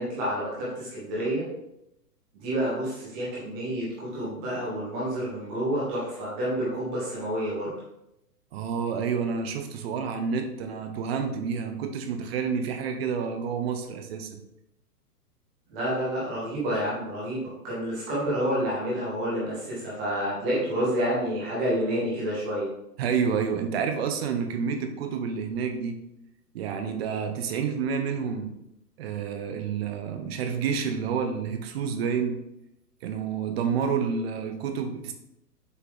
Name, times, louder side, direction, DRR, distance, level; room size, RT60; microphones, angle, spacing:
voice 1, 0.0-1.4 2.4-7.7 15.7-22.7, equal, 5° right, -7 dB, 0.4 m, -29 dB
voice 2, 8.5-14.4 23.0-26.0 26.5-28.5 29.0-32.4 33.0-35.1, right 6 dB, 40° right, 6 dB, 0.9 m, -29 dB
6.9 x 4.5 x 3.6 m, 0.82 s
hypercardioid pair, 130°, 49 cm